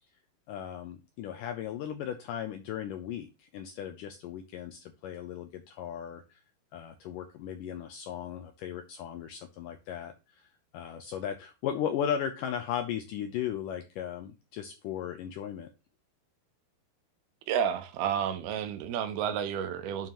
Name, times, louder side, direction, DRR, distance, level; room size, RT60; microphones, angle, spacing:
voice 1, 0.5-6.4 6.7-10.5 10.7-15.7, left 9 dB, 80° left, 1.9 m, -36 dB
voice 2, 17.5-20.1, right 8 dB, 80° right, 2.7 m, -31 dB
9.2 x 5.7 x 2.9 m
omnidirectional pair, 4.5 m